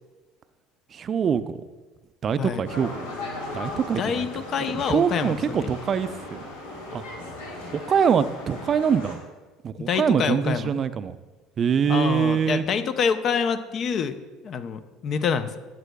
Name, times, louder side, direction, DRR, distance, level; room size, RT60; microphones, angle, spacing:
voice 1, 0.9-1.6 2.2-3.1 3.5-4.3 4.6-6.4 6.9-7.0 7.7-9.2 9.6-11.2 11.6-12.6, right 7 dB, 40° right, 14 dB, 0.4 m, -24 dB
sound 1, 2.7-9.2, left 2 dB, 85° left, 1.6 m, -37 dB
voice 2, 4.0-5.7 9.8-10.8 11.9-14.1 14.4-15.6, left 6 dB, 50° left, 11 dB, 0.5 m, -26 dB
12.5 x 8.1 x 2.3 m, 1.2 s
hypercardioid pair, 70°, 0 cm